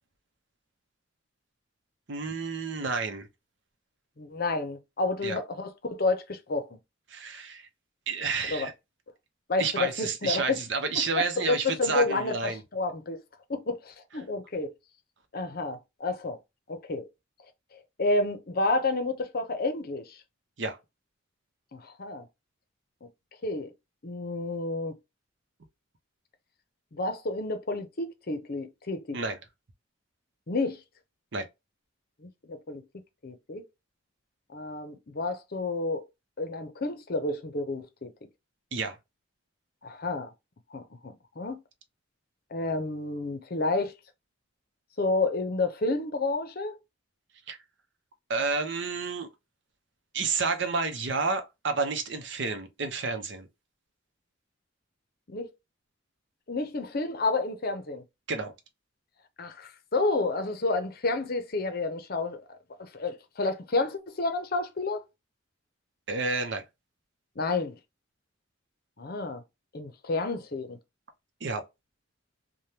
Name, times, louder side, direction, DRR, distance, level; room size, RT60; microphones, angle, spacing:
voice 1, 2.1-3.3 5.2-5.4 7.1-7.7 8.1-8.7 9.6-12.6 20.6-20.8 29.1-29.4 31.3-31.5 38.7-39.0 47.5-47.6 48.3-49.3 50.1-53.5 58.3-58.5 66.1-66.6 71.4-71.6, right 4 dB, 60° right, 0.7 m, -30 dB
voice 2, 4.2-6.7 8.5-8.7 9.5-10.6 11.1-13.2 13.5-14.7 15.3-16.4 16.7-17.1 18.0-20.2 21.7-22.2 23.4-23.7 24.0-25.0 26.9-29.2 30.5-30.8 32.2-32.8 33.2-33.6 34.5-36.0 36.4-38.1 39.8-40.3 40.7-41.6 42.5-43.9 45.0-46.8 55.3-55.5 56.5-58.0 59.4-62.4 62.8-65.0 67.4-67.7 69.0-69.4 69.7-70.8, left 3 dB, 50° left, 0.6 m, -30 dB
3.4 x 2.2 x 2.8 m
head